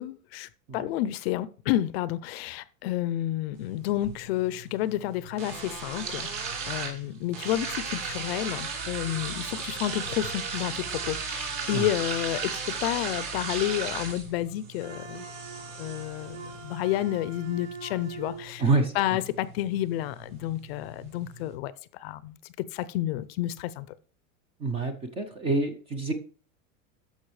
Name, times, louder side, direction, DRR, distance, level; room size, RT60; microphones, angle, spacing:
voice 1, 0.0-6.3 6.7-15.3 15.8-18.6 18.9-22.4 22.7-24.0, left 13 dB, 50° left, 0.5 m, -30 dB
sound 1, 3.5-21.5, right 5 dB, 45° right, 3.1 m, -37 dB
Wind instrument woodwind instrument, 14.8-18.5, right 5 dB, 70° right, 4.2 m, -43 dB
voice 2, 18.6-18.9 24.6-26.1, right 3 dB, 15° right, 0.4 m, -26 dB
13.0 x 5.4 x 3.2 m
supercardioid pair, 160°, 40 cm